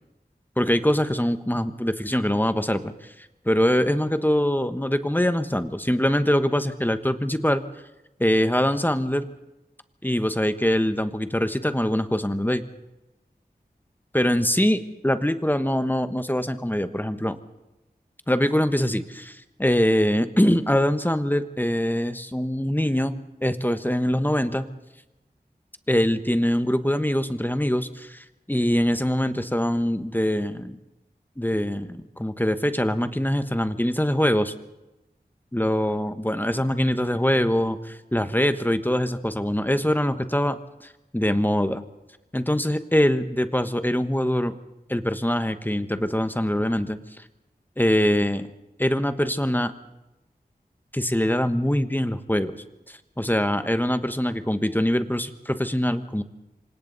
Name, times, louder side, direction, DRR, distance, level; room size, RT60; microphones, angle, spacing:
voice 1, 0.6-2.9 3.4-7.6 8.2-9.2 10.0-12.6 14.1-17.4 18.3-23.1 23.4-24.6 25.9-30.8 31.4-34.5 35.5-40.6 41.1-41.8 42.3-44.5 44.9-47.0 47.8-48.5 48.8-49.7 50.9-52.6 52.9-56.2, equal, 10° left, 10 dB, 1.3 m, -23 dB
28.5 x 25.0 x 4.1 m, 0.96 s
wide cardioid pair, 55°, 17 cm